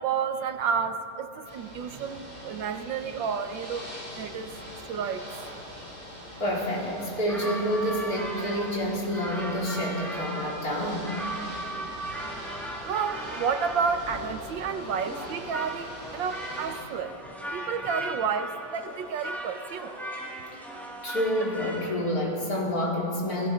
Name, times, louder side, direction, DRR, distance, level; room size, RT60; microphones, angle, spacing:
voice 1, 0.0-4.5 4.9-5.3 12.8-19.9, right 6 dB, 80° right, 8 dB, 1.7 m, -31 dB
Ocean / Boat Water vehicle, 1.4-16.8, equal, 20° left, 7.4 m, -43 dB
voice 2, 6.4-11.1 21.0-23.5, equal, 50° left, -3 dB, 4.2 m, -28 dB
sound 1, 6.8-22.0, right 1 dB, ahead, 3.0 m, -38 dB
29.5 x 18.5 x 5.1 m, 2.7 s
omnidirectional pair, 2.0 m